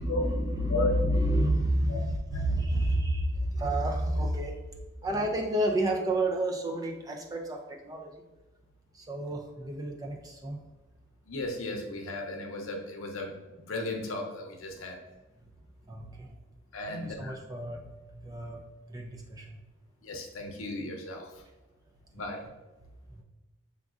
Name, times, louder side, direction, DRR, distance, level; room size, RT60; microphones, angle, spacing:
voice 1, 0.0-4.6 5.0-8.2 8.9-10.6 15.9-16.3 16.9-17.8 18.2-18.6 18.9-19.6 23.1-23.2, right 1 dB, 15° right, 1 dB, 0.3 m, -30 dB
voice 2, 11.3-15.0 16.7-17.3 20.0-21.3 22.1-22.4, left 1 dB, 80° left, 2 dB, 0.7 m, -35 dB
5.0 x 3.5 x 2.4 m, 1.1 s
head